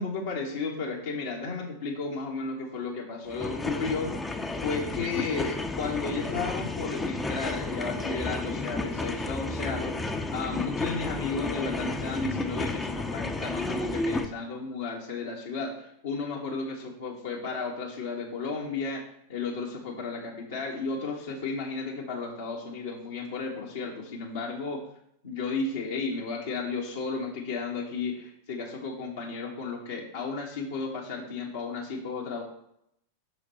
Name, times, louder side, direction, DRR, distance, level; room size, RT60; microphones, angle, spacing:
voice 1, 0.0-4.1 4.6-19.0 19.3-24.8 25.2-32.4, left 4 dB, 60° left, -3 dB, 1.4 m, -33 dB
sound 1, 3.3-14.2, left 2 dB, 10° left, 0.6 m, -32 dB
6.1 x 4.9 x 5.5 m, 0.74 s
figure-of-eight pair, 90°, 0 cm